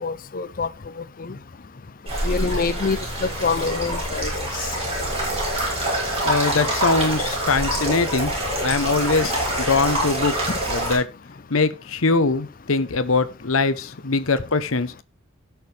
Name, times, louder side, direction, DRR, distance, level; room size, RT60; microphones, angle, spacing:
voice 1, 0.0-0.7 2.2-3.0 3.4-4.3, left 4 dB, 40° left, 0.5 m, -25 dB
sound 1, 2.1-11.0, right 1 dB, 25° right, 5.7 m, -25 dB
voice 2, 6.2-8.3 8.6-11.1 11.5-14.9, left 3 dB, 70° left, 1.0 m, -22 dB
17.5 x 6.3 x 3.4 m
head